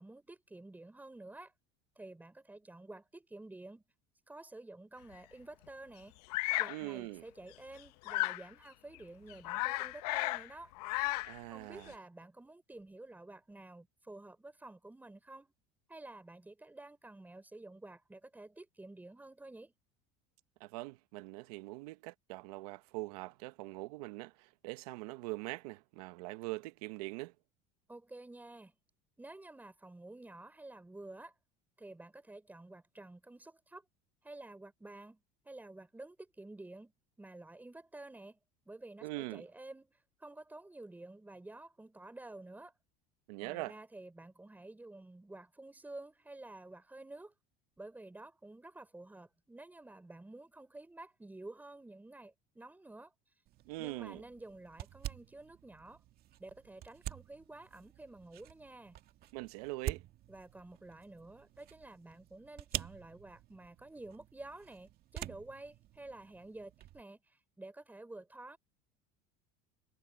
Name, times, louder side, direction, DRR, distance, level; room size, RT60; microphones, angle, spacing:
voice 1, 0.0-1.5 2.0-3.8 4.3-6.2 6.6-10.7 11.5-15.5 15.9-19.7 27.9-28.7 29.2-31.3 31.8-33.8 34.2-36.9 37.2-38.4 38.7-39.9 40.2-42.7 43.4-47.3 47.8-53.1 53.8-56.0 56.4-59.0 60.3-68.6, right 2 dB, 10° right, 5.3 m, -51 dB
Bird vocalization bird call bird song, 6.3-6.8 8.1-8.5 8.9-9.0 9.3-10.5 10.7-11.4, left 21 dB, 80° left, 0.8 m, -34 dB
voice 2, 6.7-7.2 11.2-11.9 20.6-27.3 39.0-39.5 43.3-43.8 53.6-54.2 59.3-60.0, right 22 dB, 80° right, 1.1 m, -42 dB
sound 1, 53.5-67.0, right 13 dB, 50° right, 2.1 m, -47 dB
supercardioid pair, 110°, 20 cm